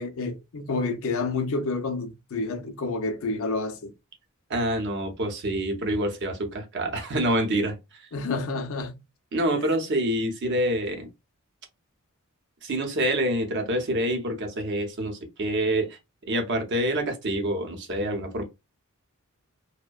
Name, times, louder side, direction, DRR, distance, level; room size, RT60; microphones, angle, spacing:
voice 1, 0.0-3.9 8.1-8.9, left 3 dB, 65° left, 0.4 m, -29 dB
voice 2, 4.5-7.8 9.3-11.1 12.6-16.0 16.3-18.4, right 1 dB, 55° right, 0.6 m, -26 dB
2.6 x 2.1 x 2.2 m
head